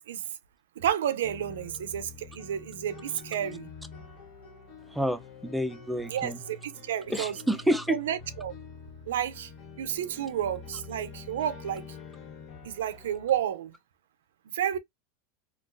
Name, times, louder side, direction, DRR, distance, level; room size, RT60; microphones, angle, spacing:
voice 1, 0.8-3.7 6.1-7.4 7.9-8.5 9.1-9.5 9.8-11.8 12.6-13.7 14.5-14.8, right 10 dB, 90° right, 0.4 m, -31 dB
sound 1, 1.2-13.4, left 4 dB, 45° left, 1.5 m, -46 dB
voice 2, 4.9-6.4 7.1-8.0, equal, ahead, 0.4 m, -29 dB
3.8 x 2.2 x 2.5 m
supercardioid pair, 125°, 0 cm